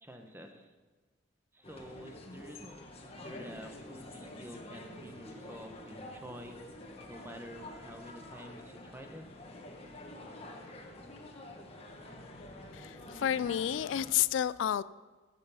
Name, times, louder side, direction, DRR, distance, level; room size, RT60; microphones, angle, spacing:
voice 1, 0.0-0.7 1.5-6.6 7.1-9.2, equal, 10° right, 5 dB, 1.0 m, -49 dB
sound 1, 1.6-14.1, left 1 dB, 30° left, 1.4 m, -48 dB
voice 2, 12.7-14.8, left 10 dB, 70° left, 18 dB, 0.3 m, -30 dB
15.0 x 6.9 x 5.7 m, 1.3 s
head